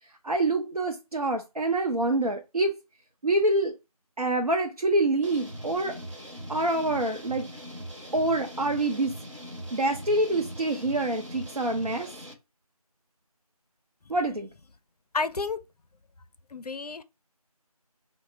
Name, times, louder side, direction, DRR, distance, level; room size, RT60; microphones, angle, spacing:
voice 1, 0.2-2.8 3.2-3.7 4.2-6.0 6.5-7.5 8.1-9.2 9.7-12.1 14.1-14.5, right 2 dB, 70° right, 0.6 m, -26 dB
sound 1, 5.2-12.3, equal, 50° right, 0.9 m, -41 dB
voice 2, 15.1-15.6 16.5-17.0, left 4 dB, 90° left, 0.4 m, -30 dB
3.6 x 2.1 x 3.2 m
figure-of-eight pair, 175°, 20 cm